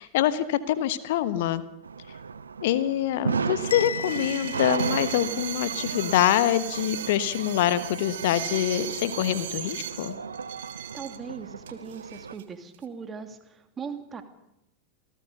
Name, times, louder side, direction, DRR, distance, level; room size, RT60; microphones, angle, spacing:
voice 1, 0.0-1.6 2.6-10.1, left 12 dB, 55° left, 14 dB, 1.3 m, -25 dB
sound 1, 1.8-12.3, right 5 dB, 75° right, 0.9 m, -34 dB
sound 2, 3.6-11.2 11.7-12.4 12.7-12.8, right 11 dB, 60° right, 1.7 m, -37 dB
Bell, 3.7-5.7, left 7 dB, 70° left, 0.9 m, -37 dB
voice 2, 10.9-14.2, right 6 dB, 20° right, 7 dB, 2.7 m, -39 dB
28.0 x 17.5 x 6.8 m, 0.84 s
figure-of-eight pair, 90°, 0 cm